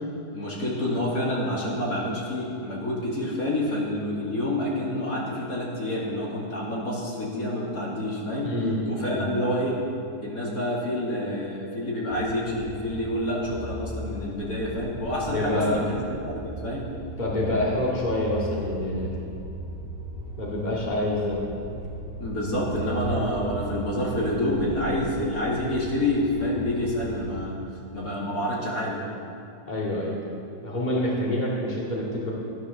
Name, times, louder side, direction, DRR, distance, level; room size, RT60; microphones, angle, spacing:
voice 1, 0.3-8.5 8.9-9.8 10.2-16.0 16.2-16.9 22.2-27.6 27.9-29.1, left 1 dB, 60° left, -5 dB, 3.0 m, -28 dB
voice 2, 8.4-8.8 9.1-9.3 15.3-15.9 17.2-19.1 20.4-21.4 29.7-30.2 30.6-32.3, left 1 dB, 25° left, -5 dB, 2.6 m, -27 dB
sound 1, 12.1-27.4, right 1 dB, 5° right, 2.0 m, -38 dB
14.5 x 10.5 x 6.7 m, 2.6 s
omnidirectional pair, 1.8 m